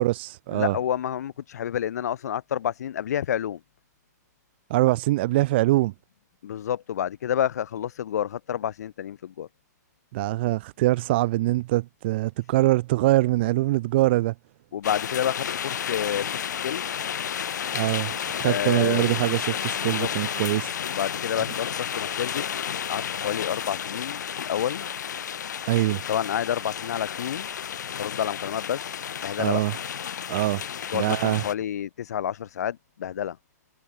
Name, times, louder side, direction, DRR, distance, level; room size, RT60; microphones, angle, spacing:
voice 1, 0.0-0.7 4.7-5.9 10.1-14.3 17.7-20.7 25.7-26.0 29.4-29.7 30.3-30.6 30.9-31.4, right 18 dB, 40° right, 1.2 m, -23 dB
voice 2, 0.5-3.6 6.4-9.5 14.7-16.9 18.4-19.4 19.8-20.1 20.8-24.9 26.1-27.5 27.9-29.6 30.9-33.4, left 10 dB, 65° left, 1.6 m, -29 dB
sound 1, 14.8-31.5, left 8 dB, 85° left, 1.3 m, -32 dB
hypercardioid pair, 170°, 9 cm